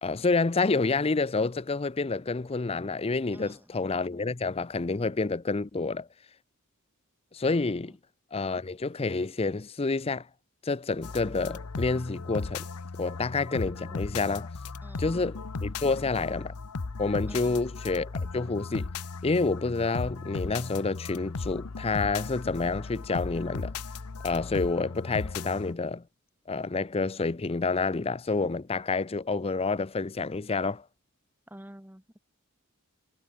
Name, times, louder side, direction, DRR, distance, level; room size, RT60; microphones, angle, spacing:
voice 1, 0.0-6.1 7.3-8.0 8.3-10.3 10.6-12.7 13.0-14.5 15.0-16.5 17.0-18.9 19.2-23.8 24.2-26.0 26.5-30.8, left 3 dB, 25° left, 0.6 m, -28 dB
voice 2, 3.3-3.8 7.8-8.0 14.8-15.1 17.3-17.6 31.5-32.2, equal, 10° right, 1.9 m, -49 dB
sound 1, 11.0-25.7, left 4 dB, 90° left, 0.9 m, -36 dB
head